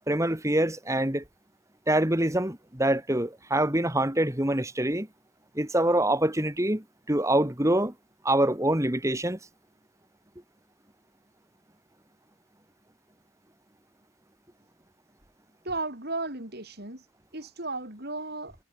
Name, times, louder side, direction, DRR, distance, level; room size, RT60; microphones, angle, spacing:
voice 1, 0.1-1.2 1.9-5.1 5.6-7.9 8.2-9.4, right 1 dB, 15° right, 2.0 m, -25 dB
voice 2, 15.6-17.1 17.3-18.6, right 2 dB, 50° right, 6.6 m, -34 dB
head